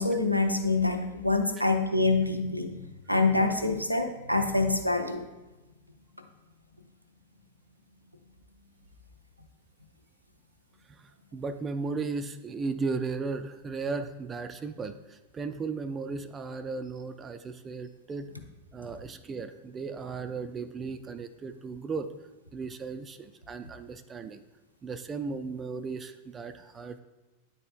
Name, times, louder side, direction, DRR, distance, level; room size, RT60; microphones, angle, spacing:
voice 1, 0.0-2.8 3.1-5.3, left 3 dB, 90° right, 5 dB, 0.6 m, -26 dB
voice 2, 10.9-18.3 18.7-22.1 22.5-24.4 24.8-27.0, right 4 dB, 20° right, 9 dB, 0.3 m, -36 dB
9.4 x 4.3 x 2.5 m, 1.1 s
figure-of-eight pair, 90°, 0 cm